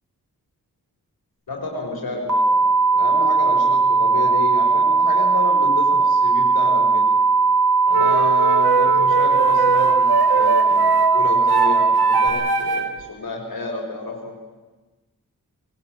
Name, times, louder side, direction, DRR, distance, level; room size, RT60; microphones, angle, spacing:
voice 1, 1.5-7.1 7.9-14.4, left 3 dB, 70° left, 0 dB, 5.6 m, -30 dB
sound 1, 2.3-12.3, right 4 dB, 55° right, 3.8 m, -18 dB
sound 2, 7.9-13.0, right 5 dB, 85° right, 1.6 m, -23 dB
21.5 x 18.0 x 9.7 m, 1.2 s
cardioid pair, 45°, 37 cm